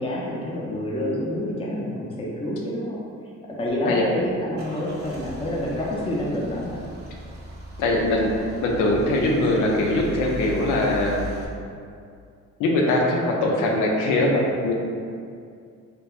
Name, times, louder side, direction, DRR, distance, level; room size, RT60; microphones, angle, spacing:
voice 1, 0.0-3.0 3.5-6.8, left 1 dB, 20° left, -4 dB, 0.5 m, -28 dB
Car / Engine starting / Idling, 3.6-11.4, right 1 dB, 35° right, 0.5 m, -38 dB
voice 2, 7.8-8.3 8.6-11.2 12.6-14.7, left 1 dB, 90° left, 0 dB, 0.5 m, -21 dB
3.0 x 2.1 x 2.3 m, 2.3 s
cardioid pair, 90°, 30 cm